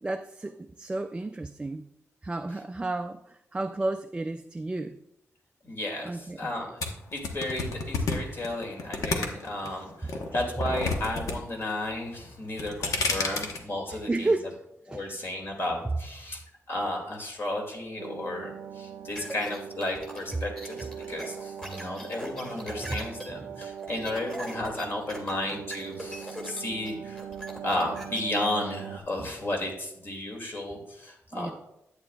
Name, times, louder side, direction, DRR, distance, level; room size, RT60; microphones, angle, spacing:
voice 1, 0.0-1.9 2.2-5.0 6.0-6.5 9.6-9.7 10.1-10.2 13.1-13.2 13.9-14.6 14.8-15.1 22.8-23.0 31.3-31.5, right 2 dB, 15° right, 0.3 m, -32 dB
voice 2, 5.6-6.8 7.1-14.3 14.9-16.4 16.7-27.2 27.6-31.5, left 1 dB, 45° left, 2.3 m, -33 dB
sound 1, 6.8-9.7 10.1-11.4 11.6-12.1 12.5-13.6, left 3 dB, 90° left, 1.2 m, -29 dB
sound 2, 18.0-29.0, right 8 dB, 80° right, 0.5 m, -41 dB
sound 3, 19.2-28.2, equal, 10° left, 1.7 m, -41 dB
11.0 x 8.7 x 2.3 m
wide cardioid pair, 140°, 6 cm